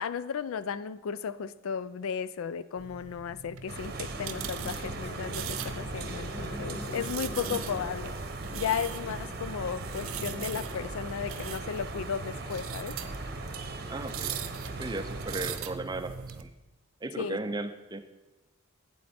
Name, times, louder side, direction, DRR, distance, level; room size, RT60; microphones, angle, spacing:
voice 1, 0.0-8.2 8.5-13.0 17.2-17.4, left 7 dB, 80° left, 15 dB, 0.4 m, -35 dB
sound 1, 2.8-16.4, right 7 dB, 85° right, 0.6 m, -41 dB
sound 2, 3.7-15.6, right 2 dB, 45° right, 0.8 m, -39 dB
sound 3, 4.1-10.8, equal, ahead, 2.0 m, -44 dB
voice 2, 13.9-14.3 14.8-16.5 17.0-18.0, right 2 dB, 20° right, 9 dB, 0.5 m, -36 dB
8.6 x 7.6 x 4.2 m, 1.1 s
head